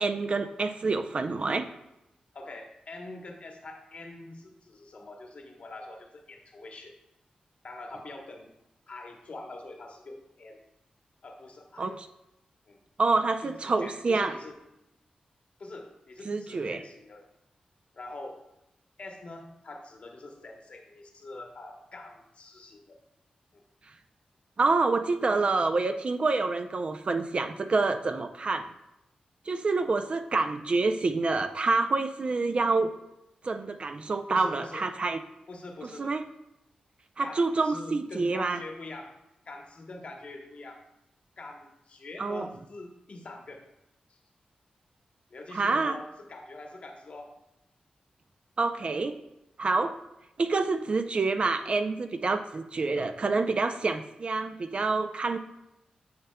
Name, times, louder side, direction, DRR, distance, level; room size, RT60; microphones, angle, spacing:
voice 1, 0.0-1.7 11.8-12.1 13.0-14.3 16.3-16.8 24.6-28.7 29.5-32.9 33.4-35.2 36.0-36.2 37.2-38.6 42.2-42.5 45.5-46.0 48.6-49.2 49.6-49.9 50.4-55.4, right 3 dB, 45° right, 8 dB, 0.4 m, -27 dB
voice 2, 2.3-7.0 7.6-8.5 8.9-10.6 11.2-12.0 12.7-12.8 13.4-14.5 15.6-17.3 17.9-18.4 19.0-23.0 23.5-23.6 34.3-34.8 35.5-36.1 37.2-39.2 39.4-40.8 41.4-43.6 44.1-44.2 45.3-47.3, left 2 dB, 55° left, 2 dB, 1.0 m, -44 dB
9.4 x 5.5 x 2.2 m, 0.88 s
wide cardioid pair, 95°, 3 cm